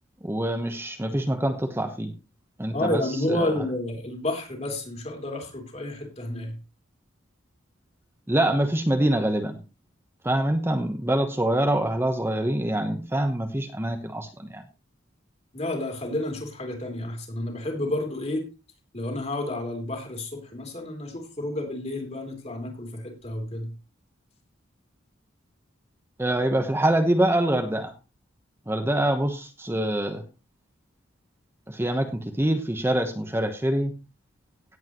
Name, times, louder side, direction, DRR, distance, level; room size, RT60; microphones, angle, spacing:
voice 1, 0.2-2.1 2.6-3.0 3.3-3.5 8.3-9.6 10.2-14.6 26.2-27.9 28.7-30.2 31.7-33.9, right 1 dB, 10° right, 5 dB, 1.0 m, -25 dB
voice 2, 2.7-6.6 15.5-18.4 18.9-23.7, left 1 dB, 35° left, 3 dB, 3.3 m, -30 dB
17.0 x 8.4 x 3.1 m, 0.29 s
head